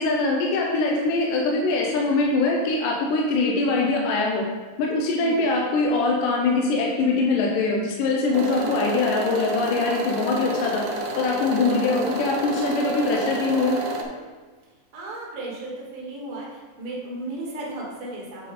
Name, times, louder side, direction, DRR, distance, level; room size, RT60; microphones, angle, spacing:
voice 1, 0.0-4.4 4.8-10.8 11.2-13.8, left 3 dB, 85° left, -1 dB, 2.4 m, -23 dB
sound 1, 8.3-14.0, right 1 dB, 75° right, 2.1 m, -30 dB
voice 2, 8.5-8.8 14.7-18.5, right 2 dB, 55° right, -3 dB, 1.9 m, -35 dB
8.4 x 4.2 x 4.1 m, 1.4 s
omnidirectional pair, 3.8 m